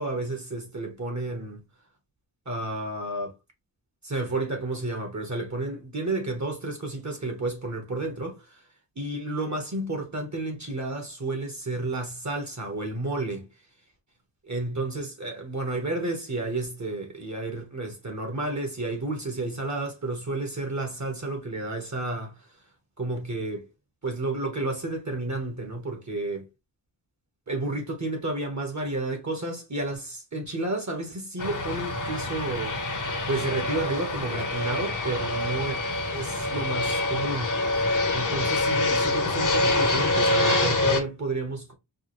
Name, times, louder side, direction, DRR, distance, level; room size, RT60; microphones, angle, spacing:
voice 1, 0.0-1.6 2.5-3.3 4.0-8.6 9.0-13.5 14.4-22.3 23.0-23.7 24.0-26.5 27.5-32.8 33.3-35.8 36.1-37.5 38.1-41.7, right 2 dB, 35° right, 1.1 m, -31 dB
Fixed-wing aircraft airplane, 31.4-41.0, left 2 dB, 40° left, 0.9 m, -26 dB
4.7 x 2.2 x 3.1 m
wide cardioid pair, 90°, 47 cm